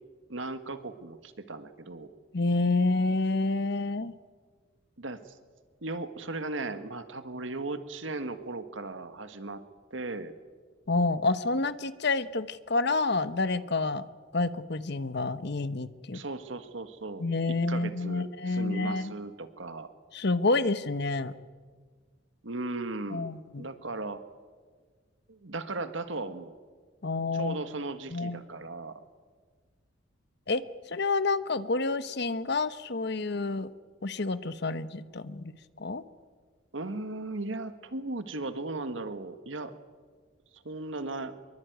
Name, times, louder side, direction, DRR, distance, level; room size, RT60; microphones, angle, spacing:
voice 1, 0.3-2.1 5.0-5.4 5.8-9.6 9.9-10.3 16.1-19.9 22.4-23.3 23.6-24.2 25.3-26.5 27.3-29.0 36.7-39.7 40.5-41.4, right 2 dB, 75° right, 10 dB, 1.7 m, -37 dB
voice 2, 2.3-4.1 10.9-14.0 14.3-16.2 17.2-19.1 20.1-21.3 23.1-23.6 27.0-27.6 28.1-28.4 30.5-30.6 30.9-33.7 34.0-35.5 35.8-36.0, left 3 dB, 55° left, 13 dB, 1.1 m, -28 dB
25.0 x 23.0 x 9.4 m, 1.5 s
head